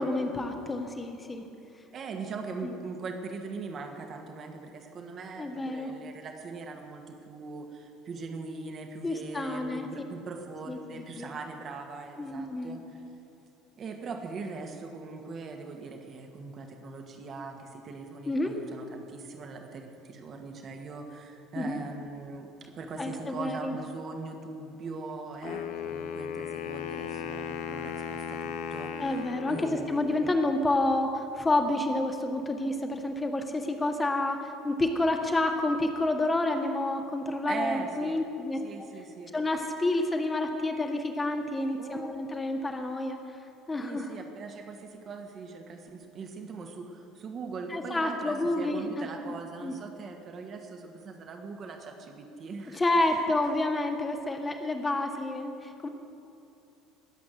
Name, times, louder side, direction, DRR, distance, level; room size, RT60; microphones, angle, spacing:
voice 1, 0.0-1.4 2.6-2.7 5.4-5.9 9.0-9.9 10.7-11.3 12.2-12.8 18.3-18.6 21.6-21.8 23.0-23.8 29.0-38.9 39.3-43.2 43.7-44.1 47.7-49.3 49.6-49.7 52.7-55.9, left 2 dB, 20° left, 4 dB, 1.8 m, -29 dB
voice 2, 1.9-13.0 13.8-30.1 37.5-38.2 38.6-39.3 41.8-42.2 43.8-53.2 55.1-55.2, right 4 dB, 40° right, 3 dB, 2.1 m, -41 dB
Wind instrument woodwind instrument, 25.4-30.4, left 7 dB, 60° left, 0.9 m, -37 dB
21.0 x 8.4 x 8.0 m, 2.9 s
figure-of-eight pair, 65°, 0 cm